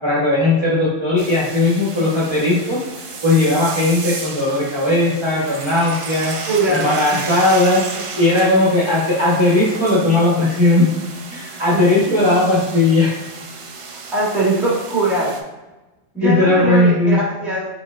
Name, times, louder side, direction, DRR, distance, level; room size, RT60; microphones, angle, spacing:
voice 1, 0.0-2.8 3.2-6.3 6.7-10.9 11.3-13.2 16.2-17.2, left 2 dB, 25° right, -8 dB, 1.1 m, -17 dB
sound 1, 1.2-15.4, right 4 dB, 55° right, 0.3 m, -33 dB
voice 2, 6.5-6.8 7.1-7.2 11.7-11.8 14.1-15.4 16.1-17.7, right 2 dB, ahead, -6 dB, 1.2 m, -20 dB
4.5 x 4.2 x 2.4 m, 1.1 s
omnidirectional pair, 1.1 m